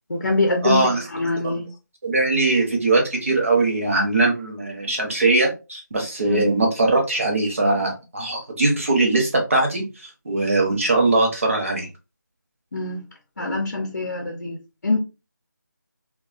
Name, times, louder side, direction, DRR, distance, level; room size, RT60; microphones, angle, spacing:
voice 1, 0.1-0.8 1.1-1.7 6.2-6.4 12.7-13.0 13.4-14.6 14.8-15.0, left 2 dB, 50° left, 0.6 m, -24 dB
voice 2, 0.6-1.0 1.4-1.6 2.0-11.9, right 2 dB, 40° right, 0.8 m, -21 dB
2.3 x 2.2 x 2.4 m
figure-of-eight pair, 170°, 11 cm